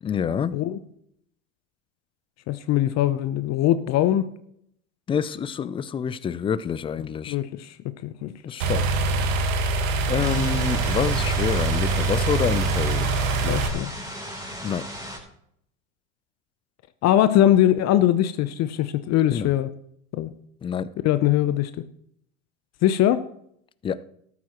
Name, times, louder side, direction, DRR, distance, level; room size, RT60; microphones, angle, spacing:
voice 1, 0.0-0.6 5.1-7.4 8.4-8.9 10.1-13.1 14.6-14.9 19.3-19.5 20.6-20.9 23.8-24.0, left 7 dB, 15° left, 0.3 m, -27 dB
voice 2, 2.5-4.3 7.3-7.8 8.0-8.7 13.4-13.9 17.0-19.7 20.1-20.3 21.0-21.7 22.8-23.2, left 12 dB, 40° left, 0.7 m, -21 dB
sound 1, 8.6-13.7, right 3 dB, 75° right, 1.6 m, -24 dB
sound 2, 10.2-15.2, equal, 10° right, 3.7 m, -36 dB
13.5 x 12.0 x 3.0 m
hypercardioid pair, 85°, 40 cm